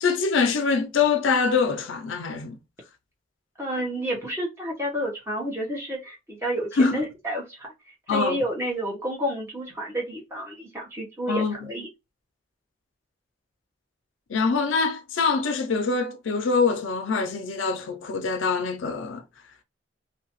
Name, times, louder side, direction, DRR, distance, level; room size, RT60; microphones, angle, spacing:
voice 1, 0.0-2.6 6.7-7.0 8.1-8.4 11.3-11.7 14.3-19.2, left 4 dB, 75° left, 0.4 m, -24 dB
voice 2, 3.6-7.7 8.1-11.9, equal, 15° right, 1.0 m, -30 dB
2.7 x 2.2 x 2.9 m
head